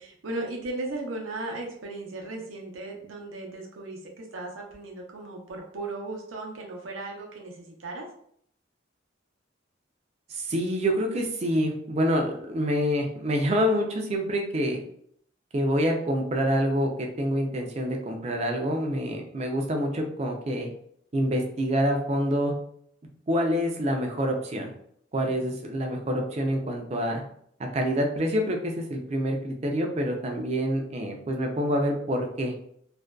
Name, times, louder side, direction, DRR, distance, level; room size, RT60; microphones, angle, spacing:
voice 1, 0.0-8.1 25.2-25.6, right 2 dB, 90° right, 0 dB, 0.6 m, -36 dB
voice 2, 10.3-14.8 15.5-20.7 21.1-22.5 23.3-24.7 25.1-27.2 27.6-32.5, equal, 35° right, 2 dB, 0.4 m, -27 dB
2.5 x 2.2 x 2.2 m, 0.66 s
head